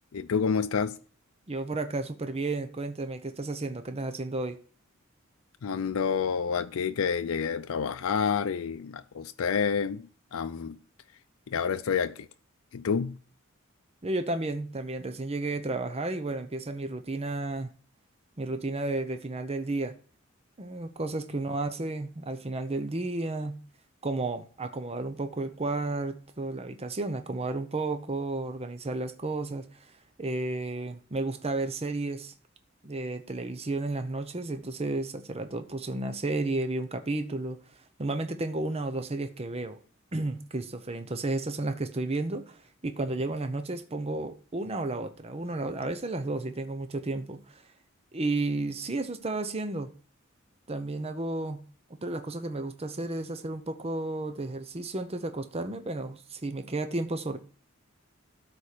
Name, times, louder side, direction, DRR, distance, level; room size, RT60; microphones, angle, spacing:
voice 1, 0.1-1.0 5.6-10.8 11.5-12.3 12.7-13.2, left 6 dB, 80° left, 0.5 m, -29 dB
voice 2, 1.5-4.6 14.0-17.7 18.4-19.9 20.6-23.6 24.0-29.8 30.2-32.3 32.8-37.6 38.0-39.8 40.1-47.6 48.1-49.9 50.7-51.6 52.0-57.4, right 2 dB, 30° right, 0.8 m, -32 dB
12.5 x 4.4 x 6.6 m
head